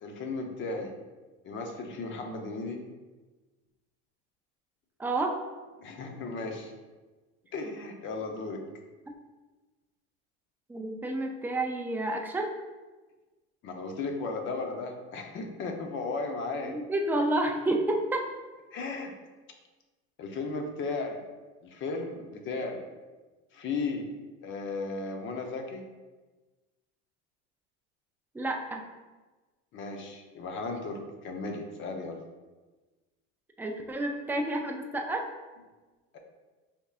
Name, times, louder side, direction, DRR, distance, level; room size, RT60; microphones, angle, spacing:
voice 1, 0.0-0.9 1.4-2.8 5.8-6.7 7.5-8.6 13.6-16.7 18.7-19.1 20.2-21.2 21.6-22.8 23.5-24.1 24.4-25.8 29.7-32.2 36.1-36.2, left 3 dB, 35° left, 4 dB, 0.7 m, -35 dB
voice 2, 5.0-5.3 10.7-12.5 16.7-18.3 28.3-28.8 33.6-35.2, right 2 dB, 5° right, 2 dB, 0.3 m, -29 dB
5.2 x 3.6 x 2.4 m, 1.2 s
supercardioid pair, 120°, 32 cm